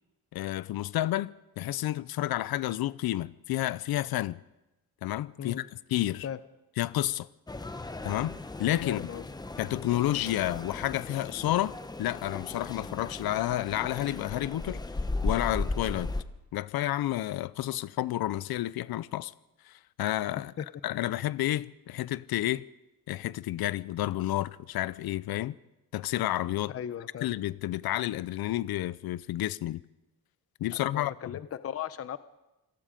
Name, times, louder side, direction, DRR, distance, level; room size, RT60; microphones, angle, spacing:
voice 1, 0.3-1.3 1.6-4.4 5.0-6.3 6.8-7.3 8.0-9.1 9.6-14.8 15.2-16.1 16.5-19.3 19.7-20.5 20.8-22.7 23.1-25.6 25.9-26.7 27.2-29.8 30.6-31.1, left 14 dB, 85° left, 0.7 m, -30 dB
sound 1, 7.5-16.2, left 2 dB, 10° left, 0.9 m, -36 dB
voice 2, 8.8-9.3 20.6-20.7 26.7-27.3 30.7-32.2, left 9 dB, 40° left, 0.7 m, -37 dB
27.0 x 18.5 x 5.2 m
wide cardioid pair, 165°, 36 cm